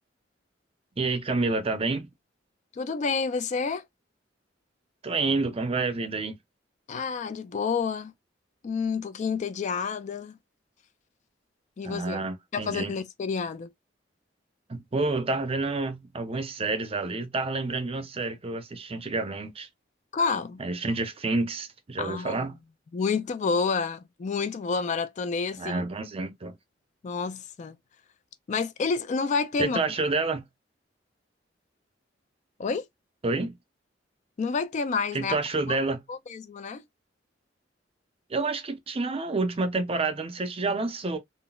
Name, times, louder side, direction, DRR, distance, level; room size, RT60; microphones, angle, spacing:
voice 1, 1.0-2.1 5.0-6.4 11.8-13.0 14.7-19.7 20.6-22.6 25.6-26.6 29.6-30.4 33.2-33.5 35.1-36.0 38.3-41.2, right 3 dB, 30° right, 0.6 m, -29 dB
voice 2, 2.7-3.8 6.9-8.1 8.6-10.4 11.8-12.2 12.5-13.7 20.1-20.6 22.0-22.5 22.9-25.8 27.0-27.8 28.5-29.8 32.6-32.9 34.4-35.4 35.7-35.8 36.1-36.8, left 5 dB, 40° left, 0.3 m, -29 dB
3.8 x 2.0 x 2.2 m
head